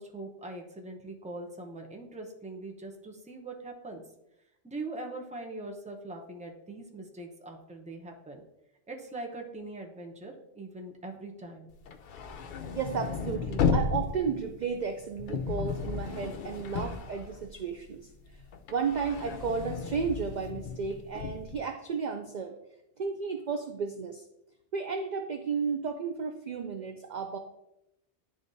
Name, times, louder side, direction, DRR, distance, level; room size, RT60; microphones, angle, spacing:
voice 1, 0.0-4.0 4.6-8.4 8.9-11.7, right 2 dB, 10° right, 2 dB, 0.6 m, -42 dB
sound 1, 11.8-17.9 18.2-21.6, left 5 dB, 55° left, 0.6 m, -34 dB
voice 2, 12.7-18.4 18.7-22.6 23.0-24.2 24.7-27.4, right 6 dB, 60° right, 5 dB, 0.5 m, -33 dB
10.5 x 3.8 x 2.6 m, 0.86 s
omnidirectional pair, 1.2 m